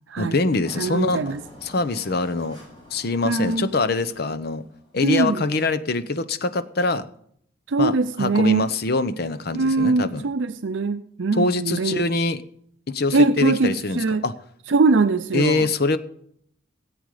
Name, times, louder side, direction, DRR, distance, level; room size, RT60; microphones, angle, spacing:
voice 1, 0.2-1.2 1.6-2.6 2.9-4.6 4.9-7.0 7.8-10.2 11.4-12.4 12.9-14.3 15.3-16.0, left 3 dB, 55° left, 12 dB, 0.8 m, -24 dB
Engine, 0.6-5.1, left 1 dB, 25° left, 6.6 m, -46 dB
voice 2, 0.8-1.4 3.2-3.7 5.0-5.5 7.7-8.7 9.5-12.0 13.1-14.2 14.7-15.7, right 3 dB, 75° right, 10 dB, 0.6 m, -21 dB
17.5 x 8.1 x 4.9 m, 0.67 s
head